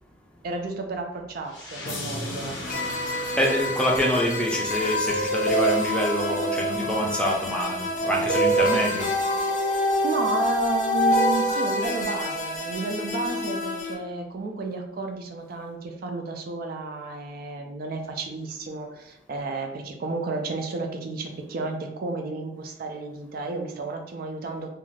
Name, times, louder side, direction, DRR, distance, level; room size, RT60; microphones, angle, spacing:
voice 1, 0.4-2.8 10.0-24.7, right 3 dB, 55° right, 3 dB, 0.4 m, -32 dB
sound 1, 1.5-6.4, left 2 dB, 85° left, 0.7 m, -38 dB
sound 2, 2.7-13.9, equal, 45° left, 0.6 m, -26 dB
voice 2, 3.4-9.1, equal, 5° left, -1 dB, 0.5 m, -26 dB
2.5 x 2.3 x 3.1 m, 0.88 s
head